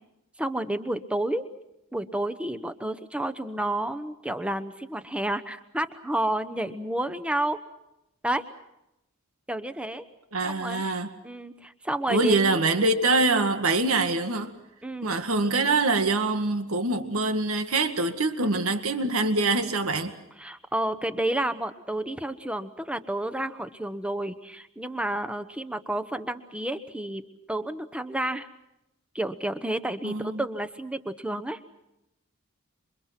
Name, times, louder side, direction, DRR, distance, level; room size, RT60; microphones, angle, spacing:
voice 1, 0.4-1.5 1.9-7.6 8.2-8.4 9.5-10.0 10.4-10.8 11.2-12.6 14.8-15.1 20.4-27.2 27.5-28.5 29.1-31.6, right 1 dB, 5° right, 1.0 m, -30 dB
voice 2, 10.3-11.1 12.1-14.5 15.0-20.1 30.0-30.4, right 2 dB, 80° right, 1.9 m, -24 dB
28.0 x 24.0 x 6.0 m
head